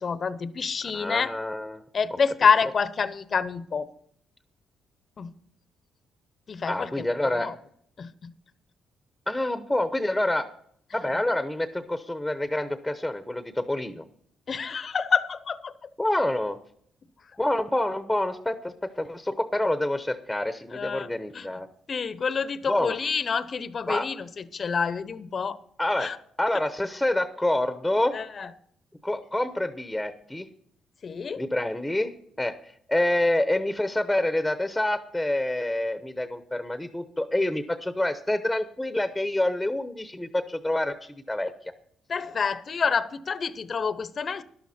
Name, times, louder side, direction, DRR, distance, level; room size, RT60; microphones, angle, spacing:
voice 1, 0.0-1.3 1.9-3.9 5.2-5.3 6.5-6.9 7.2-7.6 8.0-8.3 14.5-15.9 20.7-21.5 21.9-25.6 26.0-26.2 28.1-28.5 31.0-31.4 42.1-44.4, left 5 dB, 45° left, 0.8 m, -27 dB
voice 2, 0.9-1.8 6.6-7.5 9.3-10.5 10.9-14.0 16.0-16.6 17.4-21.7 22.7-23.0 23.9-24.1 25.8-28.2 29.0-30.5 31.4-32.1 32.4-41.5, left 1 dB, 5° left, 0.9 m, -27 dB
12.5 x 11.5 x 4.3 m
cardioid pair, 90°, 0 cm